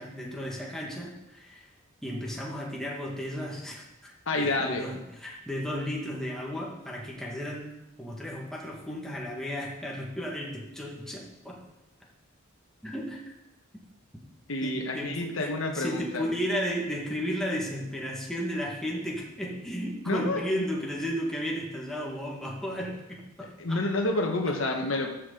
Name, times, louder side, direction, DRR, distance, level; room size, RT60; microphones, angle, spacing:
voice 1, 0.0-1.7 2.0-7.7 8.0-11.6 12.8-13.2 14.6-15.5 15.7-23.8, equal, ahead, -3 dB, 1.6 m, -34 dB
voice 2, 4.3-4.9 14.5-16.3 20.1-20.4 23.4-25.1, left 2 dB, 75° left, 3 dB, 1.3 m, -29 dB
12.5 x 6.4 x 3.9 m, 0.94 s
head